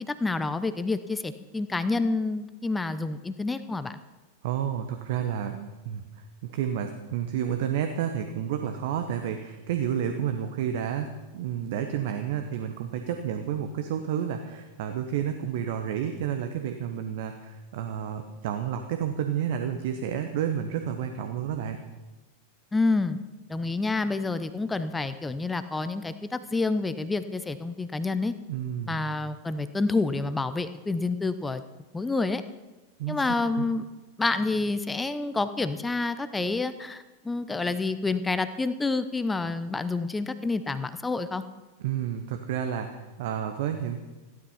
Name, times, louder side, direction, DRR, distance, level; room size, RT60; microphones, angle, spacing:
voice 1, 0.1-4.0 22.7-23.2 23.5-28.3 28.9-31.6 31.9-32.4 33.1-33.8 34.2-41.4, left 3 dB, 10° left, 12 dB, 0.7 m, -28 dB
voice 2, 4.4-6.0 6.4-21.8 28.5-29.0 33.0-33.2 33.5-33.6 41.8-44.0, right 9 dB, 50° right, 7 dB, 1.1 m, -30 dB
15.0 x 12.0 x 5.8 m, 1.2 s
figure-of-eight pair, 90°, 0 cm